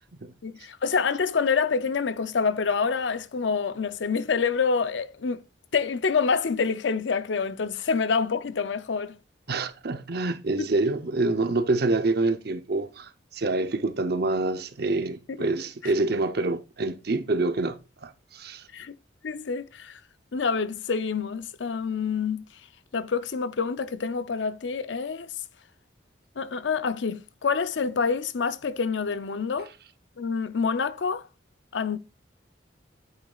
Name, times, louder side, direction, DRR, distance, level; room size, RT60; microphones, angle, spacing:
voice 1, 0.4-5.4 5.7-9.2 15.3-15.5 15.8-15.9 18.7-18.9 19.2-20.0 20.3-22.4 22.9-25.3 26.4-29.7 30.2-31.3 31.7-32.0, left 5 dB, 70° left, 0.6 m, -27 dB
voice 2, 9.5-18.6, right 2 dB, 55° right, 0.8 m, -27 dB
8.8 x 8.7 x 2.4 m
head